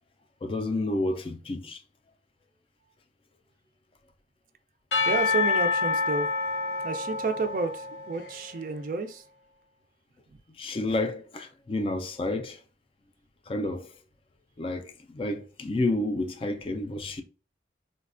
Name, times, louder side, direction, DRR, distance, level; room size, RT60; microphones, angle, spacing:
voice 1, 0.4-1.8 10.6-12.6 13.5-13.9 14.6-17.2, left 2 dB, 30° left, 0.3 m, -30 dB
Percussion / Church bell, 4.9-8.6, left 4 dB, 80° left, 0.6 m, -28 dB
voice 2, 5.1-6.3 6.8-9.2, right 3 dB, 50° right, 0.3 m, -30 dB
3.9 x 2.2 x 2.4 m
head